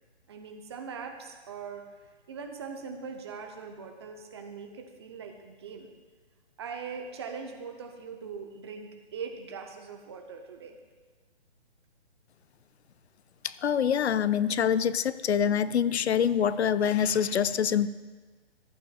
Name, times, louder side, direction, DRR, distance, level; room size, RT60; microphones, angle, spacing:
voice 1, 0.3-5.9 6.6-10.8, right 5 dB, 25° right, 4 dB, 0.6 m, -41 dB
voice 2, 13.4-17.9, left 8 dB, 75° left, 15 dB, 0.5 m, -25 dB
14.5 x 8.6 x 2.3 m, 1.4 s
hypercardioid pair, 155°, 33 cm